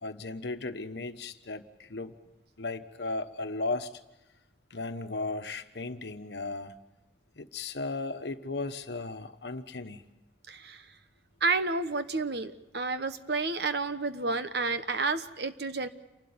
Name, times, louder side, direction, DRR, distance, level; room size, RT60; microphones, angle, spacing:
voice 1, 0.0-2.1 2.6-3.9 4.7-6.7 7.4-10.0, left 3 dB, 75° left, 1.2 m, -36 dB
voice 2, 10.5-10.8 11.4-15.9, right 3 dB, 65° right, 1.1 m, -30 dB
28.5 x 12.5 x 8.7 m
head